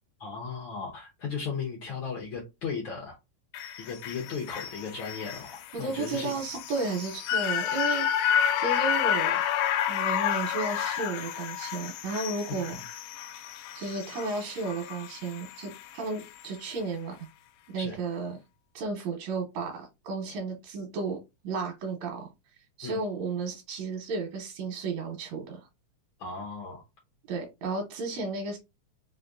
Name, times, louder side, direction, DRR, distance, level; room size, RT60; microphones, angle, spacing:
voice 1, 0.2-3.2 3.7-6.3 12.7-12.8 17.8-18.0 22.8-23.0 26.2-26.8, left 5 dB, 70° left, 1.1 m, -36 dB
sound 1, 3.5-15.9 16.2-16.3, left 9 dB, 90° left, 2.1 m, -30 dB
voice 2, 5.7-9.4 9.9-12.8 13.7-17.3 17.7-18.4 18.7-21.2 21.4-22.3 22.8-25.7 27.3-28.6, right 3 dB, 70° right, 2.0 m, -33 dB
4.9 x 2.7 x 2.5 m
omnidirectional pair, 3.5 m